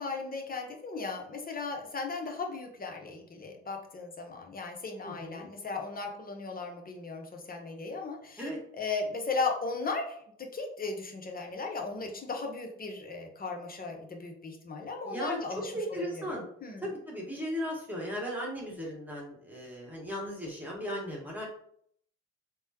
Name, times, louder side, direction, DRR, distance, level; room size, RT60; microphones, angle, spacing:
voice 1, 0.0-16.9, left 3 dB, 25° left, 3 dB, 0.8 m, -37 dB
voice 2, 5.0-5.5 8.4-8.6 15.0-15.4 15.7-16.5 16.8-21.5, equal, 5° right, -3 dB, 1.3 m, -36 dB
3.4 x 2.2 x 2.8 m, 0.65 s
hypercardioid pair, 55°, 33 cm